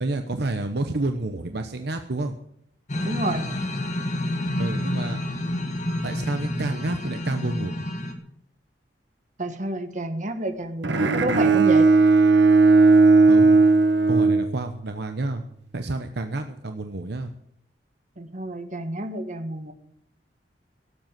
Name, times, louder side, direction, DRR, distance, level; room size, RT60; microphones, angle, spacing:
voice 1, 0.0-2.3 4.6-5.2 6.0-7.8 13.3-13.6 14.1-15.4 15.7-17.3, right 2 dB, 65° right, 7 dB, 0.9 m, -29 dB
sound 1, 2.9-8.1, left 1 dB, 40° left, 1.9 m, -29 dB
voice 2, 3.0-3.4 9.4-11.9 18.2-19.7, right 1 dB, 45° right, 8 dB, 1.6 m, -29 dB
Bowed string instrument, 10.8-15.1, right 3 dB, 80° right, 1.2 m, -17 dB
17.0 x 8.0 x 7.6 m, 0.70 s
head